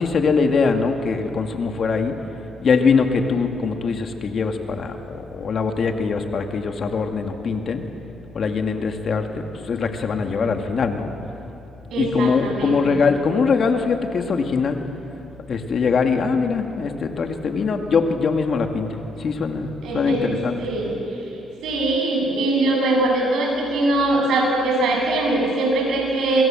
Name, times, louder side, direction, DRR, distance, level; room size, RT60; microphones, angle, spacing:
voice 1, 0.0-2.2 2.6-7.8 8.3-11.1 12.0-14.8 15.5-20.7, left 5 dB, 50° left, 5 dB, 2.3 m, -22 dB
voice 2, 11.9-13.0 19.8-20.9 21.6-26.4, right 2 dB, 75° right, 0 dB, 7.4 m, -22 dB
26.0 x 23.0 x 7.7 m, 2.9 s
cardioid pair, 90°, 0 cm